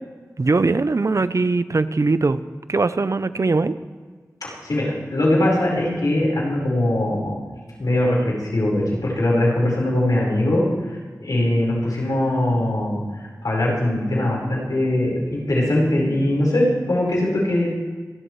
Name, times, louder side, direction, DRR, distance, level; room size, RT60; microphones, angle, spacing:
voice 1, 0.4-2.4 2.7-3.8, right 3 dB, 55° right, 13 dB, 0.6 m, -20 dB
voice 2, 4.4-7.3 7.8-8.8 9.1-10.7 11.2-13.0 13.4-17.8, left 1 dB, 85° left, -4 dB, 4.8 m, -21 dB
26.5 x 12.0 x 3.3 m, 1.5 s
wide cardioid pair, 60°, 6 cm